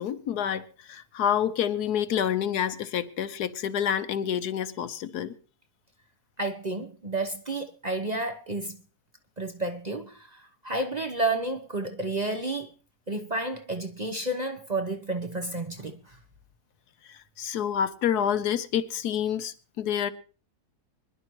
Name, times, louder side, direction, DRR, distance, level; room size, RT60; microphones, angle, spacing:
voice 1, 0.0-5.3 17.1-20.1, left 9 dB, 80° left, 1.4 m, -28 dB
voice 2, 6.4-8.8 9.4-12.7 13.1-16.2, right 2 dB, 35° right, 0.8 m, -31 dB
24.5 x 11.0 x 3.1 m
omnidirectional pair, 1.7 m